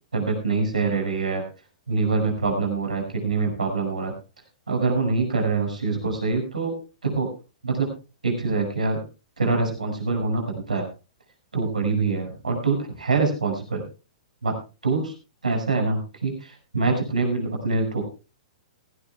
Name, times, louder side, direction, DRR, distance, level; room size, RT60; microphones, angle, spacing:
voice 1, 0.1-1.4 1.9-4.1 4.7-6.8 7.0-7.3 7.6-7.9 8.2-9.0 9.4-10.9 11.5-13.8 14.4-14.5 14.8-15.1 15.4-18.0, right 4 dB, 85° right, 2 dB, 5.8 m, -24 dB
18.5 x 16.0 x 2.3 m, 0.31 s
figure-of-eight pair, 115°, 4 cm